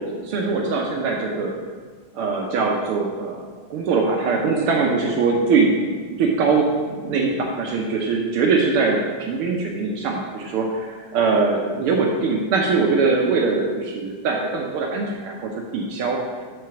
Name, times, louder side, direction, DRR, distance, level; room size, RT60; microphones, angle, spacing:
voice 1, 0.0-1.5 2.1-3.4 3.7-16.2, right 4 dB, 80° right, 0 dB, 1.6 m, -22 dB
8.3 x 4.0 x 5.7 m, 1.5 s
omnidirectional pair, 2.4 m